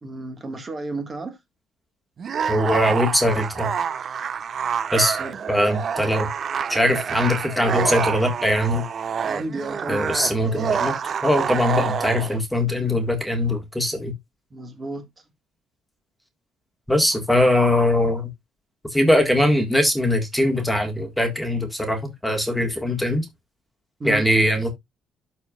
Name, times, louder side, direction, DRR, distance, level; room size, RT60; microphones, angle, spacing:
voice 1, 0.0-1.4 5.2-5.4 9.2-10.2 14.5-15.1 24.0-24.3, right 2 dB, 25° right, 1.6 m, -32 dB
sound 1, 2.2-12.4, right 7 dB, 40° right, 0.6 m, -27 dB
voice 2, 2.5-3.7 4.9-5.2 5.5-6.3 6.7-8.8 9.9-10.9 11.2-14.1 16.9-18.3 18.9-23.2 24.0-24.7, left 1 dB, 5° left, 1.6 m, -21 dB
12.5 x 4.3 x 2.3 m
cardioid pair, 125°, 0 cm